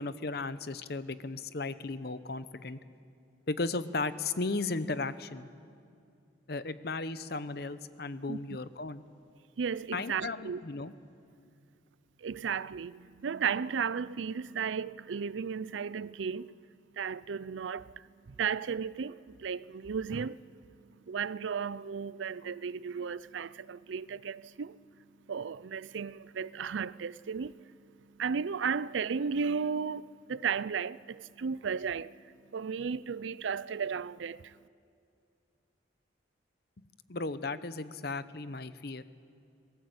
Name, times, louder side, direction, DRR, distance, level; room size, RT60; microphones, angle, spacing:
voice 1, 0.0-2.8 3.5-5.5 6.5-9.0 9.9-10.9 37.1-39.0, left 3 dB, 55° left, 0.8 m, -35 dB
voice 2, 9.6-10.6 12.2-16.6 17.0-20.4 21.1-24.8 25.3-27.7 28.2-32.3 32.5-34.5, right 6 dB, 80° right, 0.5 m, -34 dB
27.0 x 19.5 x 8.0 m
head